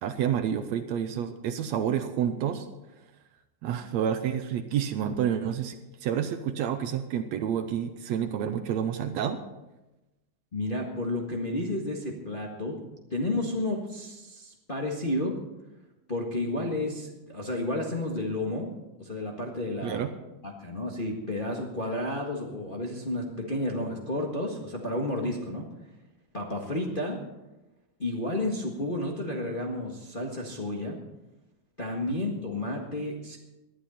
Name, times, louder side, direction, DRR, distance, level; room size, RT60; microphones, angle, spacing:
voice 1, 0.0-2.7 3.6-9.5 19.8-20.1 32.1-32.2, right 9 dB, 75° right, 9 dB, 1.9 m, -29 dB
voice 2, 10.5-12.8 13.1-15.4 16.1-18.7 19.0-20.1 20.4-25.7 26.3-27.2 28.0-31.0 31.8-33.4, left 1 dB, 25° left, -1 dB, 1.3 m, -31 dB
19.0 x 11.5 x 4.3 m, 1.0 s
omnidirectional pair, 3.5 m